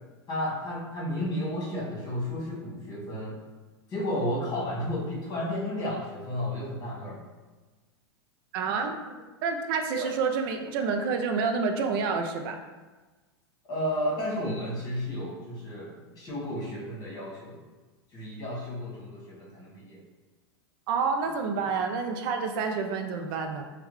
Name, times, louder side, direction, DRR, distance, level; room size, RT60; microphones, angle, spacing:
voice 1, 0.3-3.4 3.9-7.2 9.9-10.1 13.7-17.6 18.1-20.0, left 1 dB, 30° left, -5 dB, 1.4 m, -32 dB
voice 2, 8.5-9.0 9.4-12.6 20.9-23.6, right 5 dB, 55° right, 4 dB, 0.5 m, -28 dB
3.4 x 2.3 x 3.1 m, 1.2 s
hypercardioid pair, 125°, 14 cm